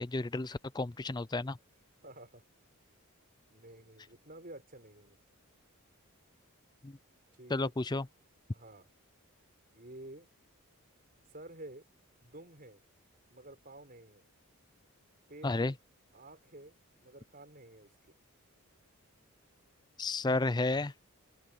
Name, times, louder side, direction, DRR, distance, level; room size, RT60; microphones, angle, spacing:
voice 1, 0.0-1.6 6.8-7.0 7.5-8.1 15.4-15.7 20.0-20.9, left 2 dB, 20° left, 0.4 m, -32 dB
voice 2, 2.0-2.4 3.5-5.2 7.4-8.0 8.5-8.9 9.7-10.3 11.3-11.9 12.2-12.8 13.3-14.3 15.3-15.8 16.1-17.9, right 1 dB, 40° right, 5.5 m, -51 dB
head